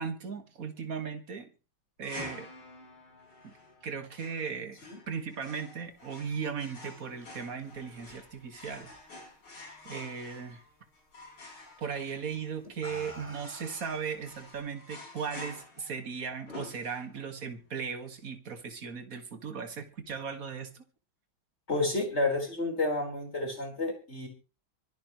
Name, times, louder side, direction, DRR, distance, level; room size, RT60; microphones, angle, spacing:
voice 1, 0.0-1.5 2.0-2.5 3.4-3.5 3.8-4.8 5.1-8.9 9.8-10.6 11.8-20.8, right 6 dB, 45° right, 2.1 m, -37 dB
sound 1, 2.0-17.4, left 2 dB, 75° left, 6.4 m, -49 dB
sound 2, 6.7-9.6 10.0-10.4 11.6-11.8 12.5-14.6, equal, 5° right, 6.5 m, -51 dB
voice 2, 21.7-24.3, left 2 dB, 30° left, 4.7 m, -30 dB
24.5 x 11.0 x 3.1 m
omnidirectional pair, 2.3 m